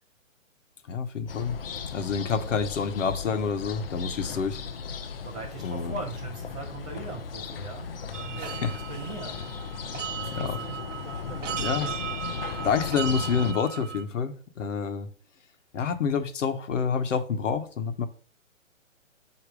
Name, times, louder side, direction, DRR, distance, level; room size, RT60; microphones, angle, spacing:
voice 1, 0.9-1.6 1.9-4.6 5.6-6.0 8.4-8.8 10.3-10.6 11.6-11.9 12.6-15.1 15.7-18.1, left 6 dB, 65° left, 1.2 m, -28 dB
sound 1, 1.3-13.5, left 6 dB, 45° left, 0.7 m, -36 dB
voice 2, 5.2-10.8, right 3 dB, 5° right, 0.5 m, -41 dB
sound 2, 8.1-14.0, right 9 dB, 65° right, 0.8 m, -36 dB
8.1 x 3.0 x 5.0 m
hypercardioid pair, 170°, 40 cm